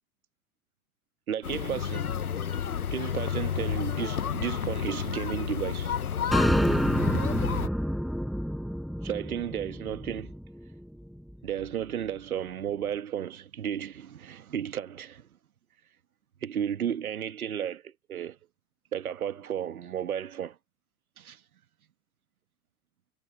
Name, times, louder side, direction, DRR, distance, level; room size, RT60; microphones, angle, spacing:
voice 1, 1.3-2.1 2.9-6.0 9.0-10.3 11.4-15.3 16.4-18.4 18.9-20.6 21.2-21.4, right 9 dB, 80° right, 1.8 m, -33 dB
sound 1, 1.4-7.7, left 8 dB, 90° left, 1.0 m, -31 dB
sound 2, 6.3-10.7, equal, ahead, 5.7 m, -28 dB
figure-of-eight pair, 90°, 43 cm